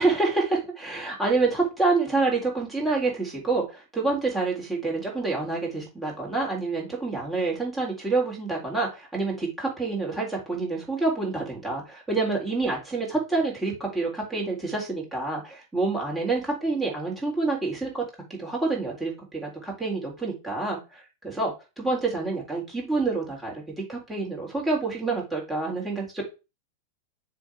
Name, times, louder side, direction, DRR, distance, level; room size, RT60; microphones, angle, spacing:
voice 1, 0.0-18.0 18.3-26.3, right 3 dB, 5° right, -3 dB, 3.8 m, -27 dB
6.9 x 3.8 x 4.9 m, 0.28 s
figure-of-eight pair, 90°, 0 cm